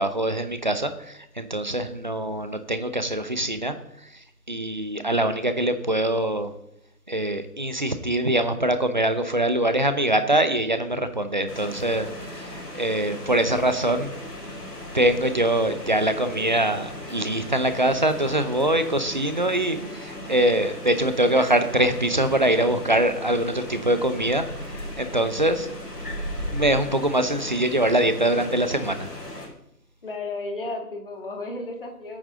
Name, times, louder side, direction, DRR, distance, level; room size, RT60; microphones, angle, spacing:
voice 1, 0.0-3.7 4.0-6.5 7.1-14.1 14.9-25.7 26.5-29.1, right 1 dB, 30° right, 10 dB, 0.8 m, -23 dB
sound 1, 11.5-29.5, left 1 dB, 70° left, 5.0 m, -37 dB
voice 2, 30.0-32.2, left 2 dB, 35° left, 3 dB, 2.0 m, -33 dB
20.0 x 8.8 x 3.8 m, 0.82 s
figure-of-eight pair, 160°, 48 cm